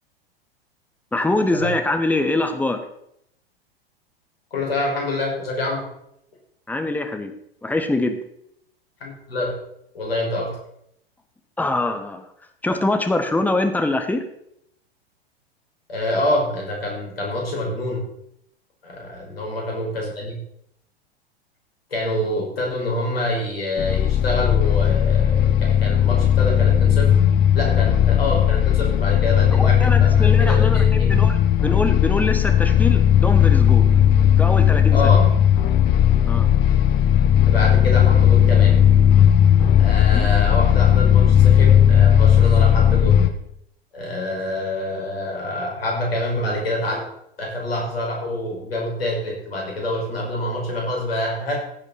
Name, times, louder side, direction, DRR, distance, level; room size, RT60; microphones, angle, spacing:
voice 1, 1.1-2.8 6.7-7.3 7.6-8.2 11.6-12.3 12.6-14.3 29.5-33.9 34.4-35.1 36.3-36.5 40.1-40.3, left 2 dB, 5° left, 7 dB, 1.3 m, -24 dB
voice 2, 4.5-5.9 9.0-9.6 9.9-10.6 15.9-18.0 18.8-20.3 21.9-27.1 27.5-31.2 34.9-35.3 37.4-38.8 39.8-43.2 43.9-47.0 47.4-51.6, left 1 dB, 75° left, -1 dB, 5.6 m, -26 dB
sound 1, 23.8-43.3, left 9 dB, 35° left, 1.2 m, -16 dB
15.5 x 8.7 x 4.3 m, 0.74 s
figure-of-eight pair, 95°, 30 cm